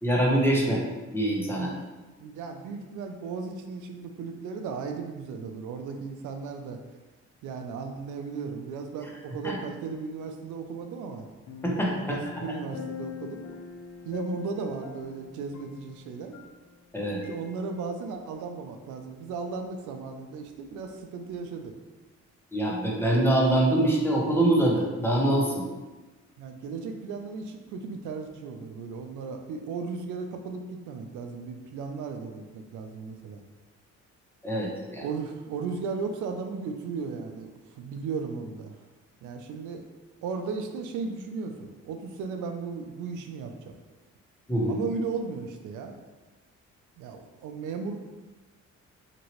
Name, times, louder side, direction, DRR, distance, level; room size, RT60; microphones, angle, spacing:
voice 1, 0.0-0.8 1.1-1.7 9.4-9.6 11.6-12.2 16.9-17.2 22.5-25.7 34.4-35.0 44.5-44.8, right 1 dB, 10° left, -3 dB, 0.7 m, -24 dB
voice 2, 2.2-6.8 7.4-11.3 12.0-13.4 14.1-16.4 17.3-21.7 26.4-33.4 35.0-38.8 39.2-39.8 40.2-43.7 44.7-46.0 47.0-48.0, right 5 dB, 80° right, 5 dB, 0.4 m, -36 dB
sound 1, 11.5-16.9 17.2-17.4, left 6 dB, 65° left, 0.5 m, -43 dB
2.9 x 2.7 x 2.9 m, 1.2 s
cardioid pair, 90°, 30 cm